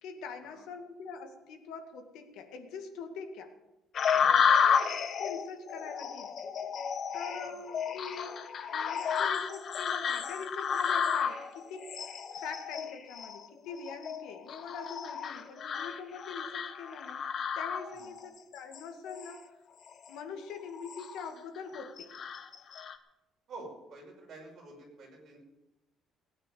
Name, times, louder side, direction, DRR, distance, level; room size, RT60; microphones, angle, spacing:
voice 1, 0.0-3.6 5.0-6.4 7.1-19.5 20.1-22.1, left 5 dB, 75° left, 4 dB, 2.1 m, -44 dB
sound 1, 3.9-18.3 18.7-19.4 19.9-20.1 20.6-21.3 21.7-23.0, left 7 dB, 40° left, 1.0 m, -31 dB
voice 2, 4.1-4.6 7.4-7.6 17.9-18.1 23.5-25.4, right 2 dB, 40° right, -1 dB, 6.1 m, -49 dB
18.0 x 9.6 x 7.0 m, 0.99 s
cardioid pair, 170°, 0 cm